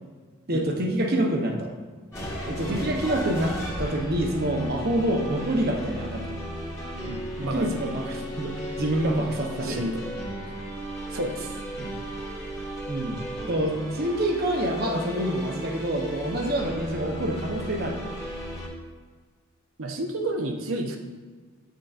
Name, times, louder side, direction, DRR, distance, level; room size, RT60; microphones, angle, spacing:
voice 1, 0.5-1.7 2.4-6.3 7.4-9.8 11.8-11.9 12.9-18.0, right 1 dB, 50° right, 2 dB, 0.9 m, -27 dB
sound 1, 2.1-18.7, equal, 15° left, 1.5 m, -35 dB
voice 2, 7.0-7.8 9.6-10.0 11.1-11.6 19.8-21.0, right 1 dB, 80° right, 3 dB, 0.8 m, -31 dB
8.1 x 6.5 x 2.5 m, 1.5 s
head